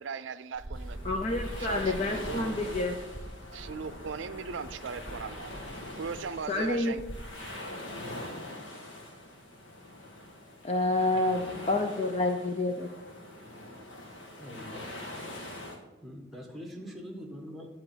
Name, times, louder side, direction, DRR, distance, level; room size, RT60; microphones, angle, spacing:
voice 1, 0.0-2.6 3.5-5.5 6.0-7.0, right 5 dB, 75° right, 14 dB, 0.5 m, -39 dB
sound 1, 0.5-7.3, right 1 dB, 20° right, 0.6 m, -43 dB
sound 2, 0.7-15.8, left 1 dB, 85° left, 1.8 m, -43 dB
voice 2, 1.0-3.0 6.5-7.0 10.6-12.9, left 2 dB, 35° left, 4 dB, 0.6 m, -28 dB
voice 3, 14.4-15.4 16.0-17.7, equal, ahead, 1 dB, 1.6 m, -44 dB
11.0 x 4.4 x 7.9 m, 1.2 s
head